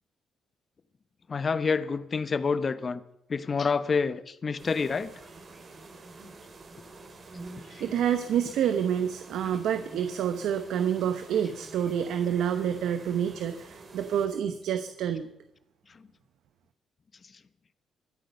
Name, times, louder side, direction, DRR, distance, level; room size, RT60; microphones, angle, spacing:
voice 1, 1.3-3.0 3.3-5.1 7.7-7.9, left 5 dB, 40° left, 14 dB, 0.9 m, -28 dB
sound 1, 4.6-14.3, right 3 dB, 40° right, 3.0 m, -48 dB
voice 2, 7.6-15.3, right 9 dB, 80° right, 9 dB, 1.0 m, -28 dB
23.0 x 8.3 x 5.5 m, 0.82 s
cardioid pair, 90°, 0 cm